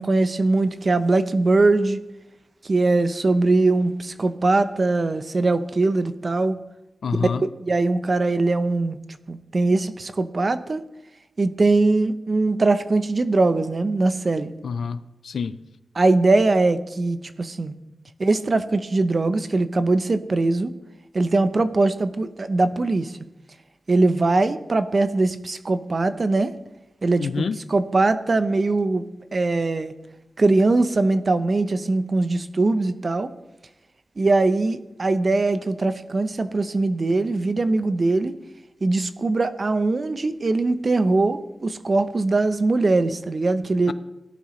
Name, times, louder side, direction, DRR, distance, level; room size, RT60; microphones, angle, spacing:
voice 1, 0.0-2.0 2.6-6.6 7.2-7.3 7.6-9.0 9.3-10.8 11.4-14.5 15.9-17.7 18.2-20.7 21.1-23.1 23.9-26.5 27.0-29.9 30.4-33.3 34.2-38.3 38.8-43.9, right 3 dB, 45° right, 0.8 m, -21 dB
voice 2, 7.0-7.5 14.6-15.6 27.2-27.6 43.9-44.0, left 6 dB, 85° left, 0.5 m, -27 dB
17.5 x 11.5 x 3.2 m
wide cardioid pair, 85°, 0 cm